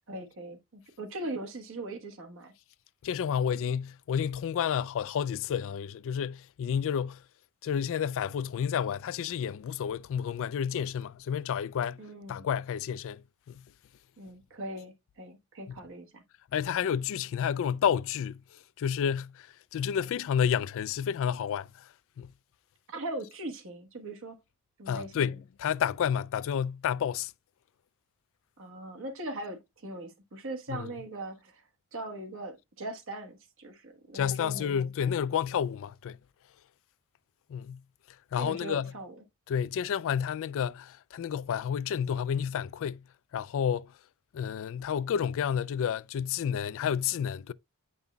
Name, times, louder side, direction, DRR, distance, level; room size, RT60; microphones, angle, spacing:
voice 1, 0.1-2.5 12.0-12.5 14.2-16.2 22.9-24.4 24.8-25.3 28.6-31.6 31.9-34.8 38.4-39.1, right 2 dB, 65° right, 1.3 m, -40 dB
voice 2, 3.0-7.2 7.6-12.0 12.3-13.2 13.5-13.6 15.7-15.8 16.5-22.3 24.9-27.3 30.7-30.9 34.1-36.2 37.5-37.8 38.3-38.9 39.5-43.0 43.3-43.9 44.3-47.5, left 8 dB, 65° left, 0.3 m, -30 dB
9.1 x 5.4 x 2.2 m
head